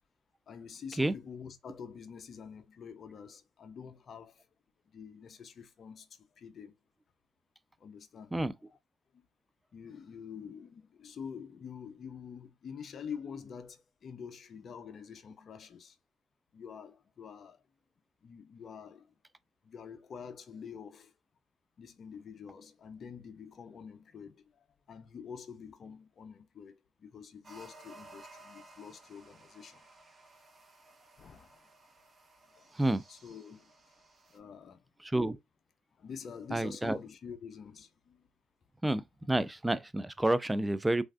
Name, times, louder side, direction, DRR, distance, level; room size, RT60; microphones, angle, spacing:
voice 1, 0.5-4.5 4.9-6.1 6.4-6.7 7.8-8.3 9.1-9.3 9.7-16.0 16.5-17.6 18.2-19.1 19.6-21.1 21.8-29.8 31.2-31.6 32.6-32.7 33.1-33.7 34.3-34.8 36.0-38.3, left 6 dB, 50° left, 0.5 m, -47 dB
sound 1, 27.4-34.4, right 2 dB, 35° right, 0.7 m, -57 dB
voice 2, 35.0-35.4 36.5-37.0 38.8-41.0, right 1 dB, 10° right, 0.3 m, -29 dB
3.2 x 2.4 x 2.4 m
supercardioid pair, 75°, 0 cm